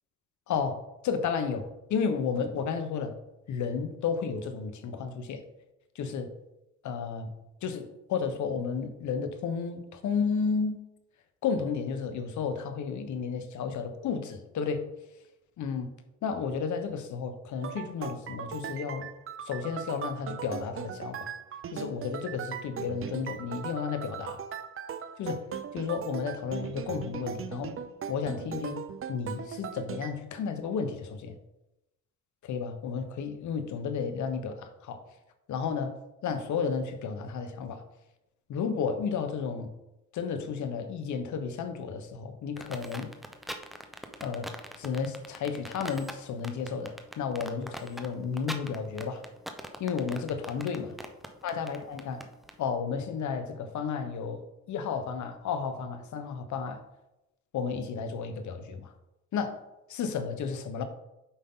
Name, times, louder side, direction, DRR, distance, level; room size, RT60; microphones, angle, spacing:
voice 1, 0.5-0.8 1.0-3.1 3.5-5.4 6.0-6.3 6.8-7.3 7.6-10.8 11.4-14.8 15.6-15.9 16.2-19.1 19.5-21.3 21.7-24.4 25.2-25.4 25.7-27.7 28.1-31.4 32.4-35.0 35.5-35.9 36.2-37.8 38.5-39.7 40.1-43.1 44.2-44.5 44.8-49.2 49.8-50.9 51.4-52.2 52.6-54.4 54.7-56.8 57.5-58.9 59.3-59.6 59.9-60.8, left 6 dB, 70° left, 9 dB, 1.1 m, -32 dB
sound 1, 17.6-30.1, right 7 dB, 45° right, 0.6 m, -39 dB
sound 2, 42.6-52.5, equal, ahead, 0.8 m, -41 dB
8.5 x 5.4 x 3.8 m, 0.92 s
cardioid pair, 90°, 30 cm